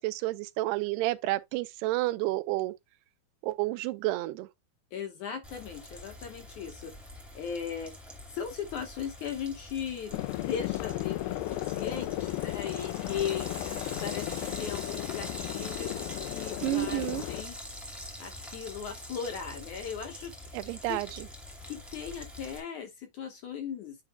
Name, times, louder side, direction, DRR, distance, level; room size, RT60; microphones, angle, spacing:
voice 1, 0.0-2.7 3.4-4.5 16.6-17.2 20.5-21.3, right 18 dB, 90° right, 2.7 m, -30 dB
voice 2, 4.9-6.9 7.3-7.9 8.3-13.5 14.0-16.0 16.3-17.6 18.2-20.3 20.9-21.0 21.7-24.0, left 7 dB, 65° left, 2.2 m, -38 dB
Frying (food), 5.4-22.6, left 1 dB, ahead, 1.7 m, -44 dB
sound 1, 10.1-17.4, left 16 dB, 80° left, 2.2 m, -35 dB
9.5 x 5.8 x 2.2 m
omnidirectional pair, 4.6 m